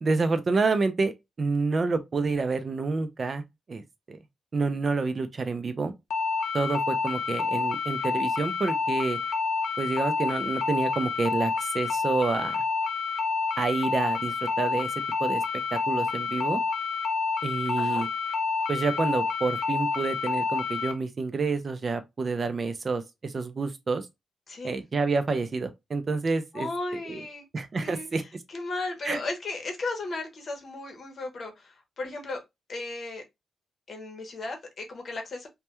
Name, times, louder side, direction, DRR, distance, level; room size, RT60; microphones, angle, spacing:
voice 1, 0.0-3.4 3.7-4.2 4.5-5.9 6.5-9.2 9.8-12.6 13.6-14.9 15.2-15.4 15.7-16.6 17.4-18.1 18.7-24.1 24.6-26.7 27.1-27.2 27.5-28.2 29.1-29.2, right 4 dB, 40° right, 0.4 m, -28 dB
sound 1, 6.1-20.9, left 5 dB, 85° left, 0.5 m, -28 dB
voice 2, 26.5-27.5 27.8-32.4 32.7-33.2 33.9-35.5, left 2 dB, 50° left, 0.8 m, -35 dB
2.2 x 2.2 x 2.8 m
cardioid pair, 105°, 0 cm